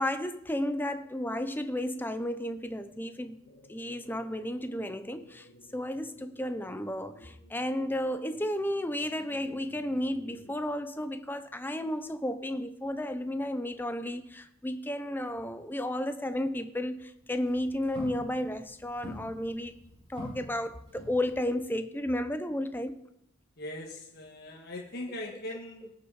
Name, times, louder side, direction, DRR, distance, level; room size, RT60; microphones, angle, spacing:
voice 1, 0.0-3.4 3.7-5.5 5.7-19.7 20.1-23.0, left 1 dB, 10° left, 10 dB, 0.7 m, -33 dB
sound 1, 3.4-10.5, equal, 75° left, 1.8 m, -56 dB
Walk footsteps, 17.2-21.7, left 1 dB, 30° right, 5.6 m, -46 dB
voice 2, 23.6-25.9, left 1 dB, 50° left, -1 dB, 1.5 m, -40 dB
17.5 x 6.6 x 4.9 m, 0.78 s
head